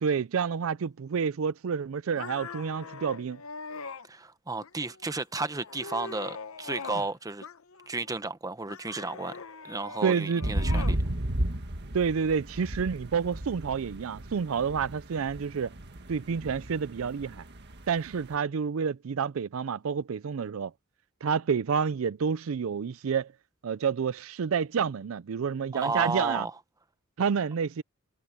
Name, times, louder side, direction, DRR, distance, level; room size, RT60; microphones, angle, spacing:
voice 1, 0.0-3.4 10.0-10.4 11.9-15.7 16.1-17.4 17.9-20.7 21.2-23.3 23.6-26.5 27.2-27.8, right 6 dB, 70° right, 0.4 m, -29 dB
sound 1, 2.2-4.1 4.6-5.1 5.5-7.1 7.4-8.1 8.7-11.0, left 4 dB, 90° left, 1.0 m, -42 dB
voice 2, 4.0-7.4 7.9-11.0 25.8-26.5, right 3 dB, 15° right, 0.9 m, -33 dB
sound 2, 10.4-18.3, right 1 dB, 55° right, 1.8 m, -33 dB
head